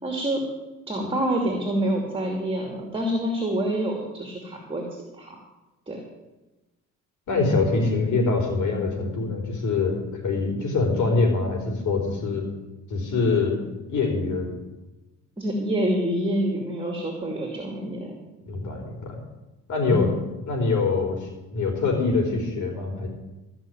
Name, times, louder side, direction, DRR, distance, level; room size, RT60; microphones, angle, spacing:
voice 1, 0.0-0.4 0.9-4.8 5.1-5.4 5.9-6.0 15.4-18.2 19.9-20.1, right 1 dB, 20° right, 1 dB, 2.6 m, -27 dB
voice 2, 7.3-10.0 10.2-12.5 12.9-13.6 13.9-14.5 18.4-19.2 19.7-20.1 20.5-23.1, left 3 dB, 75° left, 1 dB, 4.1 m, -24 dB
14.0 x 6.0 x 9.1 m, 1.1 s
cardioid pair, 90°, 30 cm